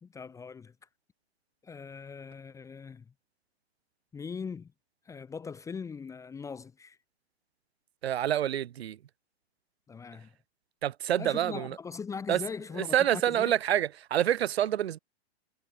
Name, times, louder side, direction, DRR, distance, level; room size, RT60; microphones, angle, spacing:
voice 1, 0.0-0.7 1.6-3.0 4.1-4.7 5.1-7.0 9.9-10.3 11.2-13.5, left 5 dB, 10° left, 1.0 m, -40 dB
voice 2, 8.0-9.0 10.8-11.8 12.3-12.4 12.7-15.0, right 11 dB, 70° right, 2.9 m, -27 dB
hypercardioid pair, 145°, 33 cm